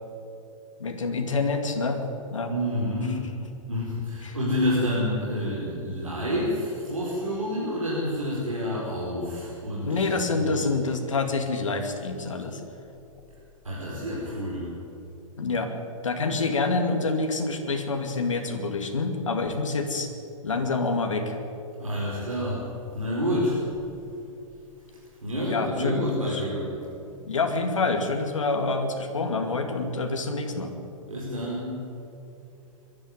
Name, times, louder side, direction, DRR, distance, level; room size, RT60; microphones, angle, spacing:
voice 1, 0.8-2.0 2.3-2.5 4.2-4.4 9.8-12.6 15.4-15.7 16.0-20.1 20.4-21.4 25.5-26.0 26.3-26.4 27.3-30.7, left 3 dB, 65° left, 4 dB, 2.5 m, -27 dB
voice 2, 2.5-3.2 3.6-10.7 13.6-14.7 21.8-23.6 24.9-26.7 31.1-31.8, equal, 75° right, -6 dB, 4.9 m, -29 dB
23.0 x 12.5 x 9.5 m, 2.8 s
figure-of-eight pair, 105°, 17 cm